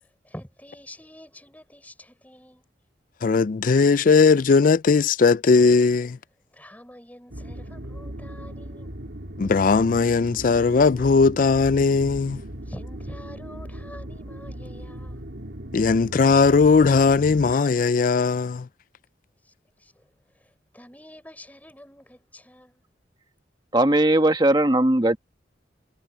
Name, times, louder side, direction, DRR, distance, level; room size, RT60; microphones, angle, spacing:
voice 1, 0.2-2.7 6.5-9.0 12.6-15.2 19.4-19.5 19.8-22.8, left 1 dB, 10° left, 6.6 m, -46 dB
voice 2, 3.2-6.2 9.4-12.4 15.7-18.7, left 4 dB, 45° left, 0.4 m, -18 dB
sound 1, 7.3-17.6, right 1 dB, 70° right, 3.0 m, -38 dB
voice 3, 23.7-25.2, right 1 dB, 25° right, 1.4 m, -19 dB
head